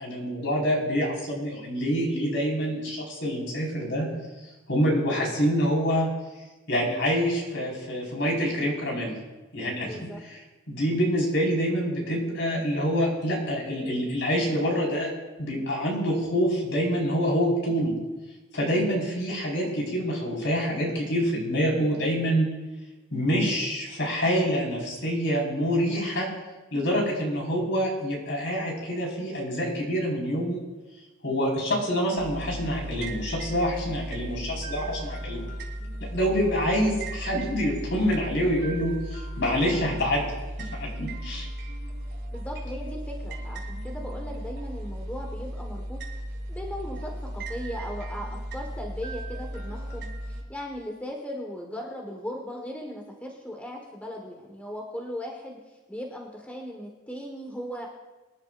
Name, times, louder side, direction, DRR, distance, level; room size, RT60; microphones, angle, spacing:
voice 1, 0.0-4.1 4.7-6.1 6.7-9.1 9.5-9.9 10.3-10.4 10.7-15.1 15.4-17.9 18.5-22.5 23.1-26.3 26.7-30.6 31.2-35.5 36.1-41.5, equal, 60° left, -3 dB, 4.8 m, -26 dB
voice 2, 9.8-10.2 39.7-39.8 42.3-46.0 46.5-57.9, equal, 5° left, -1 dB, 1.4 m, -38 dB
sound 1, 32.2-50.4, right 1 dB, 55° right, 2.3 m, -36 dB
24.5 x 11.0 x 2.6 m, 1.2 s
head